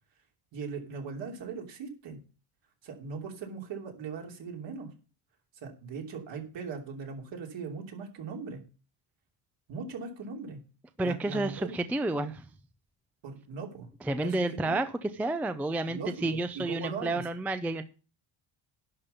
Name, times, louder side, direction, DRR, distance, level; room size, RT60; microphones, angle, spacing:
voice 1, 0.5-2.2 2.8-4.9 5.6-8.6 9.7-10.6 11.0-11.7 13.2-13.9 14.2-14.4 14.6-14.8 15.9-17.2, right 5 dB, 60° right, 1 dB, 3.1 m, -39 dB
voice 2, 11.0-12.4 14.0-17.8, right 2 dB, 5° right, 10 dB, 0.4 m, -30 dB
11.0 x 5.4 x 6.8 m, 0.35 s
cardioid pair, 140°, 49 cm